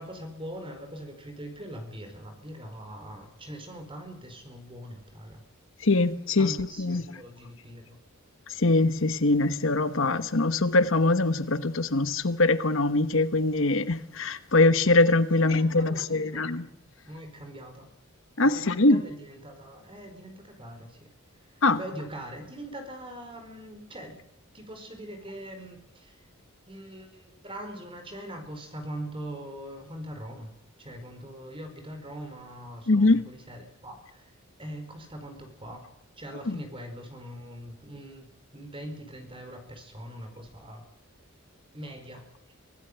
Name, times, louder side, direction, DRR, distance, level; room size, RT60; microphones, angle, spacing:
voice 1, 0.0-5.4 6.4-8.0 15.3-16.5 17.0-17.9 18.4-21.1 21.4-24.2 24.5-26.2 26.7-30.5 30.8-35.9 36.2-38.3 38.5-40.8 41.7-42.5, right 1 dB, 25° right, 4.8 m, -42 dB
voice 2, 5.8-7.0 8.5-16.7 18.4-19.0 21.6-21.8 32.9-33.2 36.5-36.6, left 2 dB, 65° left, 1.2 m, -23 dB
25.5 x 16.5 x 8.1 m
head